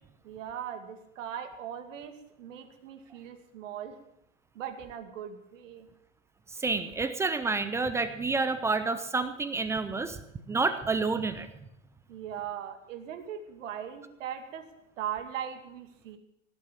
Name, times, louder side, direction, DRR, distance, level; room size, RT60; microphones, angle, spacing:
voice 1, 0.2-4.0 4.5-5.9 12.1-14.7 15.0-16.2, right 9 dB, 70° right, 7 dB, 2.4 m, -39 dB
voice 2, 6.6-10.2 10.5-11.5, right 3 dB, 5° right, 11 dB, 0.4 m, -29 dB
17.0 x 8.5 x 7.5 m, 0.83 s
hypercardioid pair, 140°, 40 cm